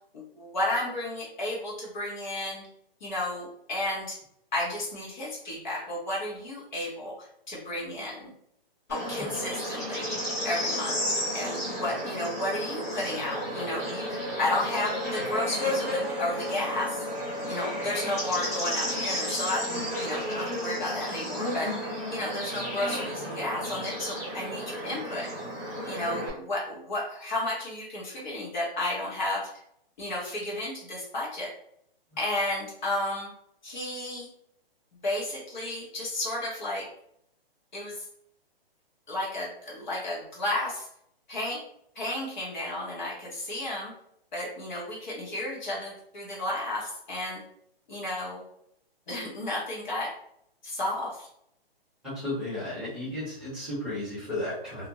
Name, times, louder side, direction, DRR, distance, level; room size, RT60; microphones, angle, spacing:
voice 1, 0.1-2.7 3.0-4.2 4.5-8.3 8.9-10.1 10.4-11.0 11.3-17.0 17.5-21.7 22.1-25.3 25.8-29.5 30.0-31.5 32.2-33.3 33.6-34.3 35.0-36.9 37.7-38.0 39.1-40.9 41.3-41.6 41.9-43.9 44.3-47.4 47.9-48.4 49.1-50.1 50.6-51.3, left 1 dB, 50° left, -5 dB, 0.9 m, -32 dB
Bird / Insect, 8.9-26.3, equal, 15° left, 0.5 m, -32 dB
voice 2, 52.0-54.9, left 1 dB, 5° right, -12 dB, 1.0 m, -34 dB
2.5 x 2.1 x 2.9 m, 0.71 s
hypercardioid pair, 175°, 30 cm